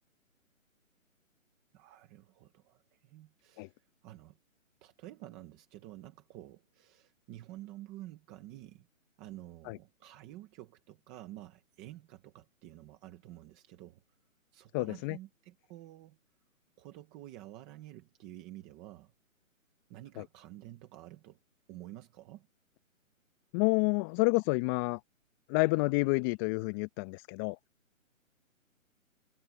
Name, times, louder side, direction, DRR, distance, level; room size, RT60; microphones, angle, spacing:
voice 1, 1.7-4.4 4.8-8.9 9.2-14.0 14.5-16.2 16.8-19.1 19.9-21.4 21.7-22.5, right 15 dB, 5° right, 0.5 m, -50 dB
voice 2, 14.7-15.2 20.2-20.3 23.5-25.0 25.5-27.6, left 29 dB, 15° left, 1.0 m, -29 dB
figure-of-eight pair, 140°, 41 cm